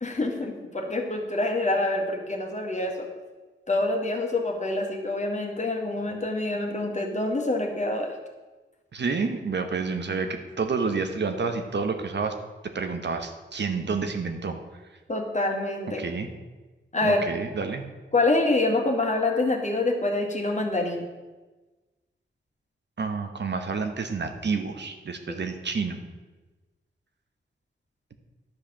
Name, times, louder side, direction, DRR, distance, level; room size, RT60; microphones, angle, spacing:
voice 1, 0.0-3.1 3.7-8.1 15.1-16.0 16.9-17.2 18.1-21.0 25.3-25.4, left 2 dB, 35° left, 2 dB, 1.9 m, -26 dB
voice 2, 8.9-12.3 12.7-14.6 16.0-16.3 17.0-17.9 23.0-26.0, right 4 dB, 60° right, 6 dB, 1.1 m, -29 dB
10.5 x 4.9 x 7.1 m, 1.2 s
cardioid pair, 70°, 21 cm